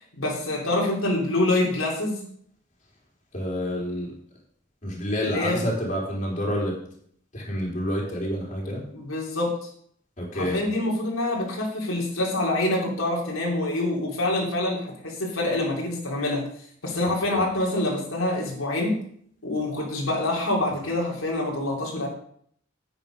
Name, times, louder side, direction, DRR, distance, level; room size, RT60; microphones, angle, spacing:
voice 1, 0.1-2.2 5.2-5.6 8.9-9.5 10.3-16.4 16.8-18.9 19.4-22.1, left 1 dB, 85° left, -3 dB, 3.2 m, -26 dB
voice 2, 3.3-4.1 4.8-6.7 7.3-8.8 10.2-10.6 17.2-17.4, equal, 35° left, -3 dB, 3.5 m, -28 dB
9.6 x 8.9 x 5.2 m, 0.64 s
head